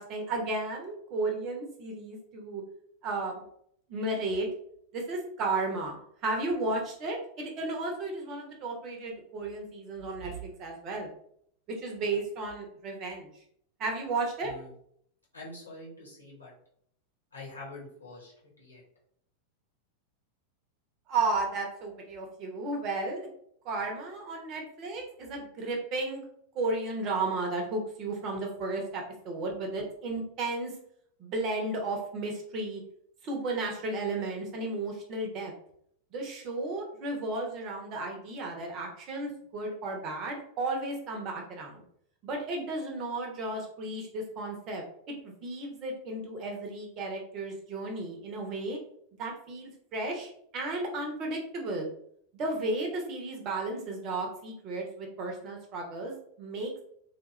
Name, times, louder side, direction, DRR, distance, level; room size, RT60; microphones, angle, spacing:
voice 1, 0.0-2.6 3.0-3.4 3.9-4.5 4.9-11.1 11.7-13.3 13.8-14.5 21.1-23.3 23.6-26.2 26.5-30.7 31.2-32.8 33.2-35.5 36.1-41.8 42.2-44.8 45.2-48.8 49.2-51.9 52.3-56.8, right 2 dB, 35° right, 1 dB, 0.8 m, -34 dB
voice 2, 15.3-16.5 17.3-18.8, left 2 dB, 80° left, -4 dB, 1.4 m, -45 dB
3.3 x 2.4 x 3.1 m, 0.67 s
figure-of-eight pair, 90°, 0 cm